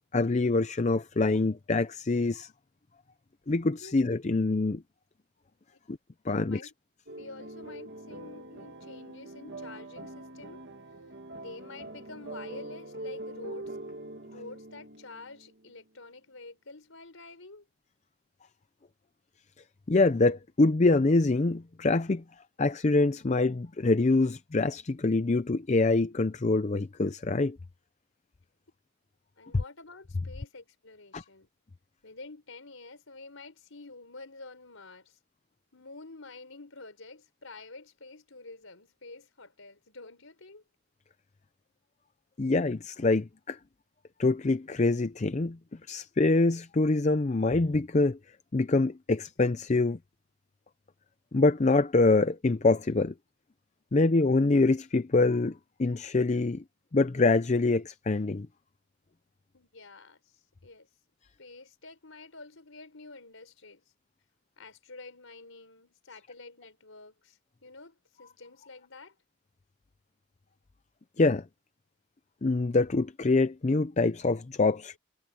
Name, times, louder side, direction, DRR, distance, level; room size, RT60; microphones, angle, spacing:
voice 1, 0.1-2.5 3.5-4.8 5.9-6.0 6.3-6.6 19.9-22.2 22.6-27.6 31.1-31.2 42.4-43.6 44.2-45.6 45.9-48.2 48.5-50.0 51.3-53.1 53.9-56.6 56.9-58.5 71.2-71.4 72.4-75.0, left 3 dB, 35° left, 0.5 m, -25 dB
voice 2, 6.3-6.7 7.2-10.6 11.3-13.8 14.2-17.7 29.4-31.5 32.0-35.2 35.7-40.6 59.5-60.9 61.4-63.8 64.6-69.2, left 3 dB, 85° left, 4.4 m, -48 dB
sound 1, 7.1-15.8, right 1 dB, 55° right, 2.1 m, -43 dB
head